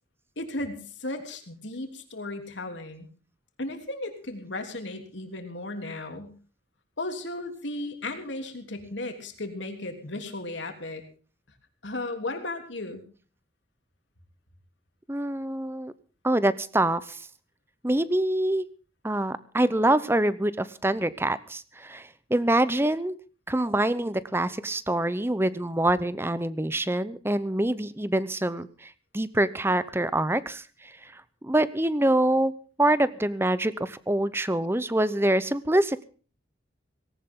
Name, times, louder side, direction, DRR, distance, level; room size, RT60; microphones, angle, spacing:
voice 1, 0.4-3.1 3.6-6.3 7.0-11.0 11.8-13.0, left 2 dB, 85° left, 5 dB, 3.2 m, -35 dB
voice 2, 15.1-15.9 16.2-17.3 17.8-18.7 19.0-23.2 23.5-32.5 32.8-36.0, right 1 dB, 15° right, 16 dB, 0.7 m, -25 dB
18.5 x 17.5 x 3.8 m, 0.38 s
head